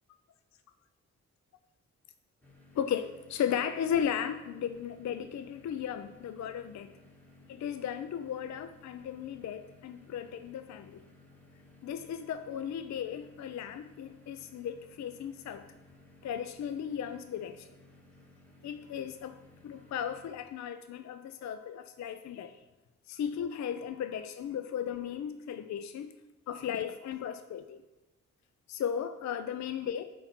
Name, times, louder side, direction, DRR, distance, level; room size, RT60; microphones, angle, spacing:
sound 1, 2.4-20.3, left 2 dB, 5° left, 1.8 m, -58 dB
voice 1, 2.7-6.9 7.5-11.0 11.8-15.7 16.2-17.7 18.6-22.6 23.1-26.1 26.5-27.8 28.7-30.0, left 8 dB, 50° left, 0.4 m, -36 dB
8.5 x 3.0 x 5.7 m
supercardioid pair, 40°, 37 cm